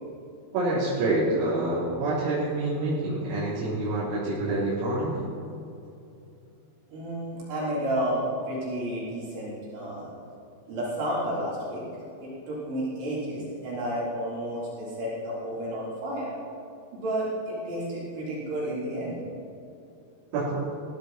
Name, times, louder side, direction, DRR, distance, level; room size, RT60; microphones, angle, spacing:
voice 1, 0.5-5.2 20.3-20.6, right 2 dB, 90° right, -10 dB, 6.1 m, -27 dB
voice 2, 6.9-10.1 10.7-11.8 12.2-16.3 16.9-19.2, right 1 dB, 65° right, -7 dB, 6.5 m, -31 dB
20.5 x 15.5 x 4.4 m, 2.7 s
omnidirectional pair, 5.8 m